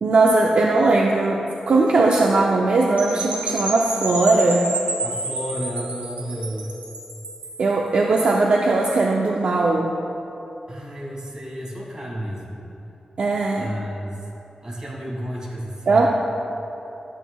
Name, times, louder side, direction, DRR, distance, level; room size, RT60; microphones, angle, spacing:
voice 1, 0.0-4.7 7.6-10.0 13.2-13.7 15.9-16.1, right 3 dB, 55° right, -1 dB, 0.5 m, -19 dB
Percussion / Wind chime, 3.0-7.7, right 2 dB, 70° right, 1.6 m, -30 dB
voice 2, 5.0-6.7 10.7-12.6 13.6-14.3 14.6-16.1, equal, 30° right, -5 dB, 2.1 m, -32 dB
12.5 x 8.9 x 2.3 m, 2.9 s
wide cardioid pair, 175°, 2 cm